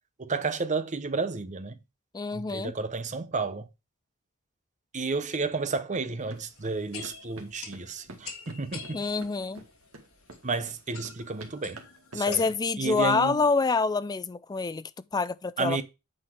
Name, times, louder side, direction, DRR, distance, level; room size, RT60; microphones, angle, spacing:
voice 1, 0.2-1.8 2.3-3.7 4.9-9.0 10.4-11.8 12.1-12.5 12.8-13.4 15.6-15.8, right 4 dB, 35° right, 0.8 m, -31 dB
voice 2, 2.1-2.7 8.9-9.6 12.1-15.8, left 4 dB, 20° left, 0.3 m, -27 dB
sound 1, 5.9-12.6, right 2 dB, 70° right, 1.8 m, -49 dB
sound 2, 6.3-12.5, left 6 dB, 75° left, 1.9 m, -47 dB
8.7 x 4.3 x 4.8 m
head